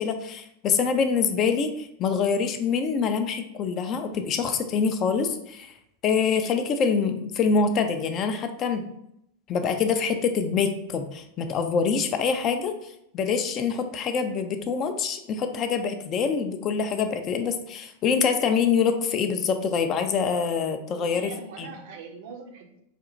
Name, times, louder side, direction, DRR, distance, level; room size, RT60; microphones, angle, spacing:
voice 1, 0.0-5.7 6.0-8.8 9.5-21.3 21.6-21.7, left 6 dB, 30° left, 7 dB, 0.3 m, -25 dB
voice 2, 20.9-22.8, right 5 dB, 50° right, 3 dB, 0.5 m, -42 dB
4.1 x 2.0 x 2.6 m, 0.77 s
figure-of-eight pair, 90°, 0 cm